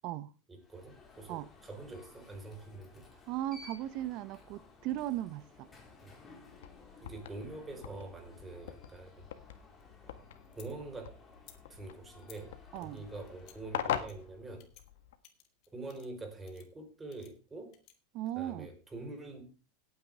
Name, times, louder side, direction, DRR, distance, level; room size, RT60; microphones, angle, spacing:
voice 1, 0.5-3.0 6.0-6.1 7.0-9.3 10.0-10.2 10.6-11.2 11.7-14.7 15.7-17.7 18.4-19.5, right 2 dB, 15° right, 4.5 m, -45 dB
Alarm, 0.6-14.5, left 3 dB, 20° left, 4.4 m, -57 dB
voice 2, 3.3-5.7 12.7-13.0 18.1-18.7, right 13 dB, 50° right, 0.8 m, -37 dB
sound 1, 6.5-15.2, left 10 dB, 80° left, 1.7 m, -43 dB
sound 2, 9.8-10.7 11.3-11.6 12.2-12.4 12.8-13.6 13.9-14.2 14.6-14.8 15.2-16.2 16.5-16.7 17.1-17.9, left 12 dB, 50° left, 2.3 m, -59 dB
17.0 x 9.4 x 3.6 m
supercardioid pair, 120°, 0 cm